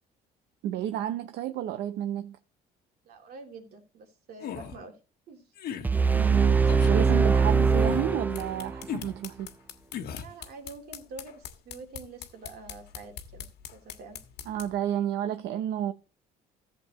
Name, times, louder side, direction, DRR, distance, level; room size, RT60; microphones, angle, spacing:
voice 1, 0.6-2.4 6.1-9.5 14.5-15.9, right 11 dB, 85° right, 0.7 m, -31 dB
voice 2, 3.0-4.9 5.3-5.4 10.2-14.2, right 3 dB, 65° right, 2.9 m, -46 dB
sound 1, 4.4-4.8 5.6-5.9 6.7-7.0 7.8-8.2 8.9-9.1 9.9-10.3, left 8 dB, 65° left, 1.2 m, -36 dB
sound 2, 5.8-8.9, right 5 dB, 10° right, 0.5 m, -22 dB
sound 3, 8.2-14.8, left 10 dB, 85° left, 1.5 m, -45 dB
15.0 x 7.7 x 2.9 m
cardioid pair, 110°, 17 cm